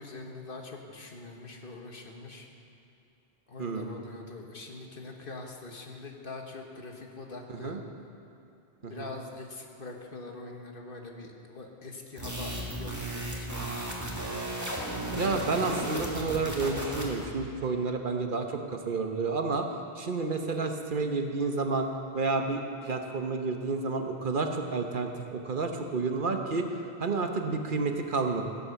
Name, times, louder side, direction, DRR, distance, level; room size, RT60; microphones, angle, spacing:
voice 1, 0.0-2.5 3.5-7.8 8.8-14.0, left 3 dB, 55° left, 2 dB, 1.4 m, -43 dB
voice 2, 3.6-4.0 7.5-7.8 8.8-9.1 15.1-19.7 20.0-21.9 22.1-28.5, right 4 dB, 55° right, 4 dB, 1.0 m, -30 dB
sound 1, 12.2-17.2, right 1 dB, 15° right, 1.9 m, -34 dB
16.0 x 8.4 x 6.8 m, 2.6 s
omnidirectional pair, 1.1 m